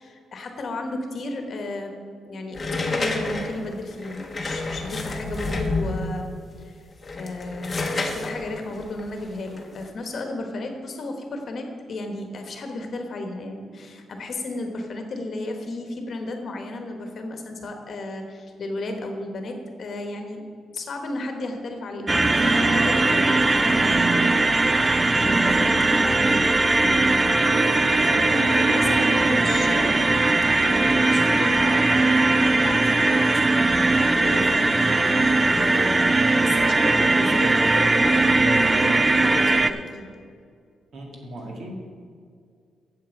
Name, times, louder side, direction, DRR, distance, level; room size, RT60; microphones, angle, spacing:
voice 1, 0.0-6.8 7.2-20.5 20.7-30.1 30.6-40.1, left 2 dB, 45° left, 4 dB, 1.2 m, -33 dB
sound 1, 2.5-6.2 6.9-9.9, left 2 dB, 20° left, 1.0 m, -29 dB
sound 2, 22.1-39.7, right 2 dB, 15° right, 0.4 m, -19 dB
sound 3, 27.4-38.5, right 9 dB, 75° right, 0.4 m, -38 dB
voice 2, 40.9-41.7, right 1 dB, 55° right, 0 dB, 2.0 m, -38 dB
8.6 x 7.6 x 7.1 m, 2.2 s
wide cardioid pair, 180°, 0 cm